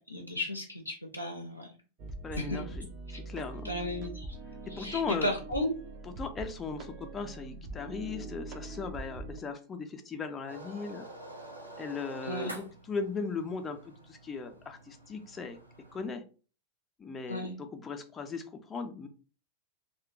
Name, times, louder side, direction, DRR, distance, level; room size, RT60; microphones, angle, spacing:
voice 1, 0.0-1.7 2.3-2.6 3.1-3.2 3.6-4.3 4.7-5.7 12.2-12.6 17.3-17.6, left 1 dB, 85° left, 2 dB, 0.4 m, -34 dB
sound 1, 2.0-9.4, right 2 dB, 40° right, 0.5 m, -43 dB
voice 2, 2.2-3.7 4.7-5.3 6.0-11.1 11.8-15.6 15.9-16.2 17.0-19.1, left 4 dB, 20° left, 5 dB, 0.4 m, -38 dB
sound 2, 10.5-16.1, right 1 dB, 85° right, 0.6 m, -48 dB
2.8 x 2.1 x 2.4 m, 0.36 s
figure-of-eight pair, 90°, 0 cm